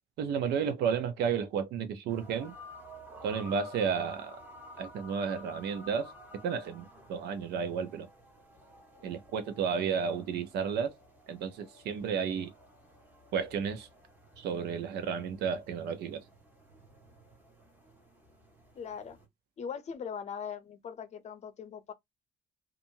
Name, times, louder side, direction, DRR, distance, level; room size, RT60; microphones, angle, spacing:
voice 1, 0.2-2.5 3.2-4.4 4.8-6.1 6.4-8.1 9.0-10.9 11.3-12.5 13.3-13.9 14.4-16.2, right 6 dB, 75° right, 0.7 m, -32 dB
sound 1, 2.1-19.3, equal, 10° right, 1.1 m, -53 dB
voice 2, 18.7-19.2 19.6-21.9, left 7 dB, 40° left, 0.6 m, -40 dB
2.6 x 2.5 x 2.7 m
cardioid pair, 110°, 17 cm